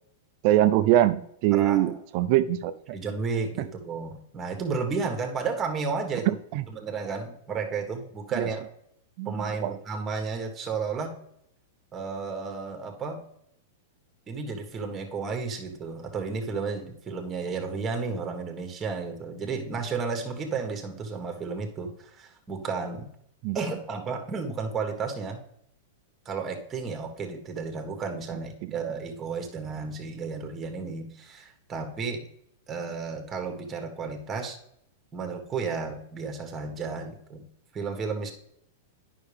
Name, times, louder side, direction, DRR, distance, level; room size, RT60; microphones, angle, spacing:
voice 1, 0.4-3.0 6.3-6.6 8.4-8.5 9.2-9.7 23.4-23.6 28.6-28.7, right 14 dB, 50° right, 13 dB, 0.5 m, -23 dB
voice 2, 1.5-2.0 2.9-6.3 6.7-8.6 9.2-11.1 11.9-13.2 14.3-23.1 23.5-25.4 26.2-32.2 32.7-34.6 35.1-37.4 37.7-38.3, right 4 dB, 20° right, 4 dB, 1.5 m, -32 dB
9.5 x 5.9 x 3.4 m, 0.73 s
hypercardioid pair, 120°, 0 cm